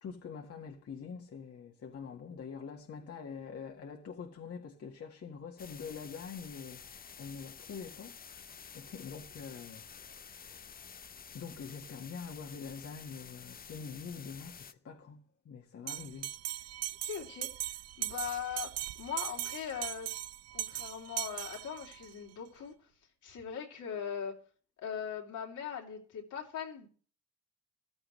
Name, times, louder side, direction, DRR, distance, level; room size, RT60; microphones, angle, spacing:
voice 1, 0.0-10.8 11.3-16.7, left 6 dB, 50° left, 1.6 m, -45 dB
sound 1, 5.6-14.7, left 7 dB, 30° left, 0.6 m, -50 dB
Bell, 15.9-22.1, right 13 dB, 60° right, 0.5 m, -39 dB
voice 2, 17.0-17.5 18.0-20.1 20.5-22.9 23.2-24.4 24.8-26.9, left 8 dB, 75° left, 3.0 m, -40 dB
15.0 x 12.5 x 3.1 m
cardioid pair, 90°, 30 cm